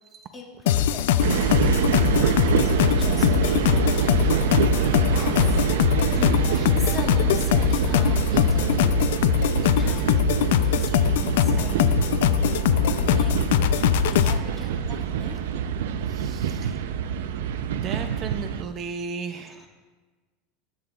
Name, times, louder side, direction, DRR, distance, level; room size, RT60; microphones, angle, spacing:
voice 1, 0.3-5.6 6.1-8.9 9.6-13.5 14.1-15.4 16.5-16.6 19.5-19.7, left 2 dB, 15° left, -2 dB, 1.9 m, -41 dB
sound 1, 0.7-14.4, left 10 dB, 80° left, 0.4 m, -22 dB
sound 2, 1.2-18.6, right 8 dB, 90° right, 0.5 m, -25 dB
voice 2, 16.1-16.7 17.6-19.6, right 5 dB, 35° right, 8 dB, 0.5 m, -35 dB
14.5 x 8.5 x 2.4 m, 1.3 s
supercardioid pair, 150°, 0 cm